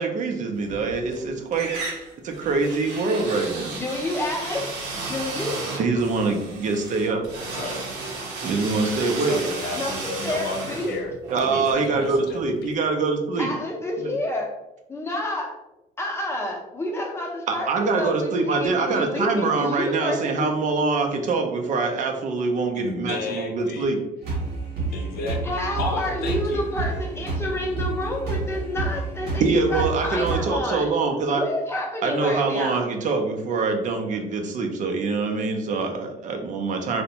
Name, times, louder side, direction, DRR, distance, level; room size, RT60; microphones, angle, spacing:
voice 1, 0.0-1.7 2.2-3.8 5.8-7.2 8.4-9.4 11.3-13.5 14.0-14.1 17.5-24.0 29.4-31.4 32.0-37.0, right 4 dB, 50° right, 3 dB, 0.4 m, -24 dB
sound 1, 0.6-1.2 1.5-12.4, right 3 dB, 90° right, 0.6 m, -34 dB
voice 2, 3.7-4.7 4.9-5.6 9.7-11.0 13.4-14.5 14.9-15.5 16.0-20.6 25.4-30.9 31.3-32.9, left 1 dB, 15° left, 0 dB, 0.6 m, -29 dB
voice 3, 7.5-7.8 9.3-11.1 11.4-12.7 13.4-13.5 22.7-23.9 24.9-25.4 25.8-26.6, left 3 dB, 65° left, 3 dB, 0.5 m, -33 dB
sound 2, 24.2-30.4, right 3 dB, 65° right, 0.9 m, -29 dB
2.5 x 2.1 x 2.8 m, 0.95 s
cardioid pair, 110°, 17 cm